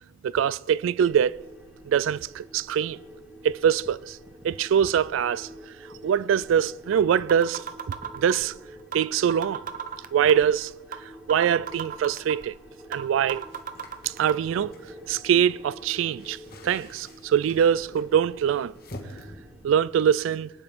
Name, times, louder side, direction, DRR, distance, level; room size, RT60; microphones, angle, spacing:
voice 1, 0.2-1.4 1.9-3.0 3.4-4.2 4.4-5.5 6.0-8.5 8.9-9.6 10.1-10.7 11.0-12.6 12.9-13.5 14.1-14.7 15.1-16.4 16.6-18.7 19.6-20.5, right 8 dB, 85° right, 0.3 m, -23 dB
sound 1, 1.0-20.1, equal, 10° right, 1.7 m, -48 dB
sound 2, 6.4-6.5 6.9-7.0 7.3-8.5 8.9-9.0 9.3-10.5 10.9-11.0 11.3-12.5 12.9-13.0 13.3-14.3, right 8 dB, 45° right, 0.8 m, -34 dB
sound 3, 13.3-19.3, left 1 dB, 50° left, 1.8 m, -48 dB
22.5 x 9.3 x 3.6 m
head